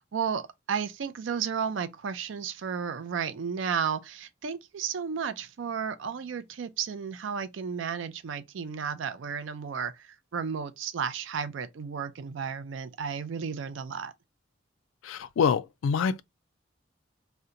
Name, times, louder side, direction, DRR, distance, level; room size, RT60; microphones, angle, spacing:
voice 1, 0.1-14.1, right 6 dB, 75° right, 0.4 m, -33 dB
voice 2, 15.0-16.2, left 6 dB, 90° left, 0.3 m, -26 dB
2.8 x 2.1 x 3.6 m
head